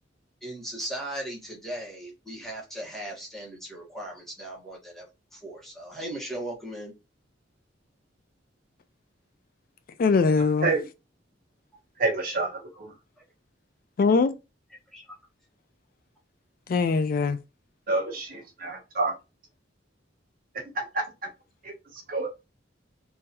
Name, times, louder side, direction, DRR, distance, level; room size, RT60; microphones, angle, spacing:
voice 1, 0.4-5.1 5.3-6.9 14.9-15.2, right 1 dB, ahead, 1.2 m, -37 dB
voice 2, 10.0-10.7 14.0-14.4 16.7-17.4, left 4 dB, 50° left, 0.3 m, -21 dB
voice 3, 12.0-12.9 17.9-19.2 20.5-21.3 21.6-22.3, right 3 dB, 50° right, 1.2 m, -29 dB
3.7 x 2.7 x 2.8 m
head